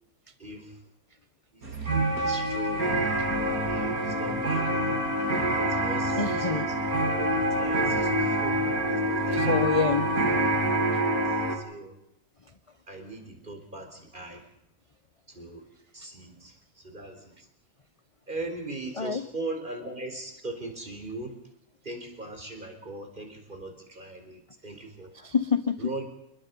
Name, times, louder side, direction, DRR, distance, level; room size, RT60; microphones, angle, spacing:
voice 1, 0.4-0.8 1.5-2.9 3.7-8.6 8.9-9.6 11.0-12.0 12.9-14.4 15.3-15.7 15.9-17.3 18.3-21.4 21.8-25.1 25.8-26.0, right 2 dB, 35° right, 5 dB, 4.6 m, -40 dB
sound 1, 1.6-11.6, right 1 dB, 90° right, 4.0 m, -26 dB
voice 2, 6.2-6.7 9.3-10.1 19.0-19.2 25.2-25.8, left 5 dB, 30° left, 11 dB, 0.8 m, -26 dB
29.0 x 22.0 x 5.5 m, 0.82 s
omnidirectional pair, 1.5 m